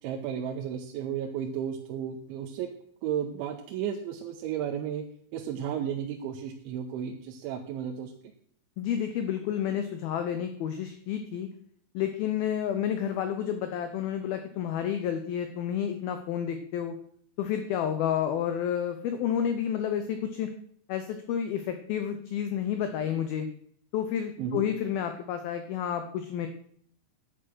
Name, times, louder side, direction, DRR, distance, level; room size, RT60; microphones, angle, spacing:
voice 1, 0.0-2.7 3.0-5.0 5.3-8.1 24.4-24.6, right 9 dB, 90° right, 2 dB, 3.3 m, -33 dB
voice 2, 8.8-11.5 11.9-17.0 17.4-20.5 20.9-23.5 23.9-26.5, left 9 dB, 75° left, 8 dB, 2.2 m, -30 dB
10.5 x 9.5 x 6.3 m, 0.63 s
omnidirectional pair, 5.2 m